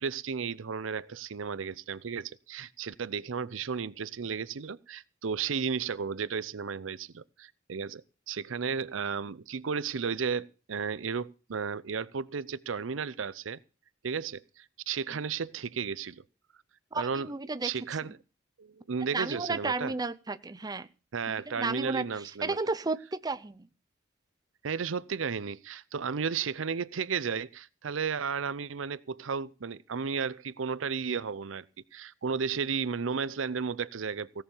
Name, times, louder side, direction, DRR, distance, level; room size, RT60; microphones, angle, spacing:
voice 1, 0.0-13.6 14.0-16.2 16.9-17.3 17.6-18.1 18.6-19.9 21.1-22.6 24.6-31.7 31.9-34.4, right 6 dB, 80° right, 0.6 m, -34 dB
voice 2, 16.9-17.7 18.0-18.1 19.1-20.9 21.3-23.7, right 3 dB, 20° right, 0.6 m, -33 dB
17.0 x 7.0 x 7.1 m
head